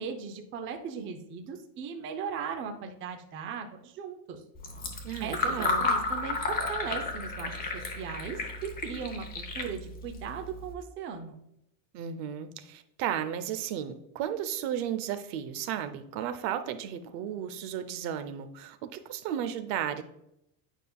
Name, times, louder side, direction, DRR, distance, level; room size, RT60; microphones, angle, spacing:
voice 1, 0.0-4.4 5.2-11.4, right 6 dB, 30° right, 5 dB, 0.5 m, -38 dB
Fill (with liquid), 4.5-10.7, left 3 dB, 20° left, 0.8 m, -33 dB
voice 2, 5.0-5.9 11.9-20.0, right 9 dB, 65° right, 10 dB, 0.7 m, -34 dB
9.0 x 5.4 x 2.3 m, 0.80 s
cardioid pair, 165°, 43 cm